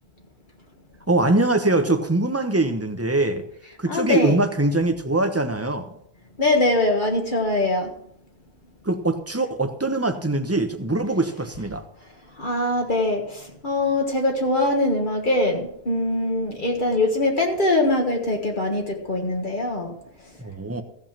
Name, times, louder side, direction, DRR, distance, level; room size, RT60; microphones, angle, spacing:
voice 1, 1.1-3.4 3.8-5.9 8.8-11.8 20.4-20.8, right 2 dB, 15° right, 7 dB, 1.0 m, -22 dB
voice 2, 3.9-4.4 6.4-7.9 12.4-19.9, left 2 dB, 50° left, 1 dB, 1.7 m, -22 dB
15.5 x 5.5 x 7.3 m, 0.73 s
omnidirectional pair, 1.1 m